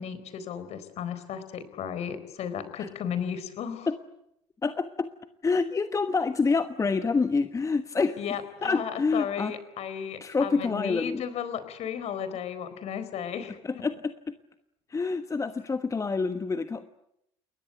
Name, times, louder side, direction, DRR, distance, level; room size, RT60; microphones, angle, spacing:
voice 1, 0.0-3.9 8.2-13.8, left 8 dB, 50° left, 12 dB, 4.2 m, -34 dB
voice 2, 4.6-5.1 5.4-8.2 8.6-9.5 10.2-11.2 13.6-14.3 14.9-16.9, left 4 dB, 20° left, 11 dB, 1.3 m, -27 dB
29.5 x 21.5 x 8.0 m, 0.79 s
figure-of-eight pair, 60°, 15 cm